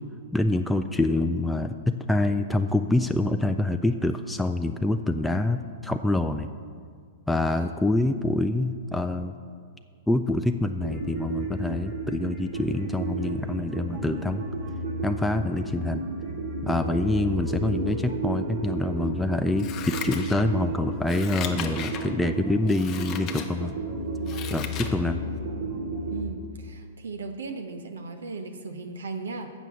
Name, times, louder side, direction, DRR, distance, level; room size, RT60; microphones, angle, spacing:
voice 1, 0.3-6.5 7.3-9.3 10.1-14.4 15.0-16.1 16.6-23.7 24.5-25.2, left 2 dB, 5° left, 6 dB, 0.3 m, -26 dB
sound 1, 10.8-26.2, right 1 dB, 65° right, 2.0 m, -32 dB
Scissors, 19.6-20.7 21.0-22.1 22.6-23.5 23.9-25.0 25.3-25.4, left 8 dB, 35° left, 0.8 m, -36 dB
voice 2, 26.1-29.5, right 3 dB, 85° right, 6 dB, 0.7 m, -36 dB
7.5 x 6.1 x 6.9 m, 2.1 s
hypercardioid pair, 125°, 0 cm